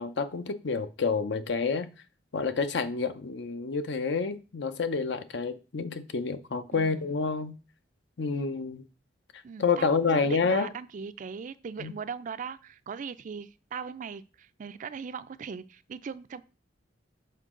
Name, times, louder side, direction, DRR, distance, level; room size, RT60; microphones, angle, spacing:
voice 1, 0.0-1.9 2.3-7.6 8.2-8.9 9.6-10.7 11.8-11.9, left 4 dB, 65° left, 0.6 m, -28 dB
voice 2, 6.7-7.1 9.4-16.4, right 6 dB, 45° right, 0.4 m, -39 dB
6.6 x 4.5 x 3.7 m
head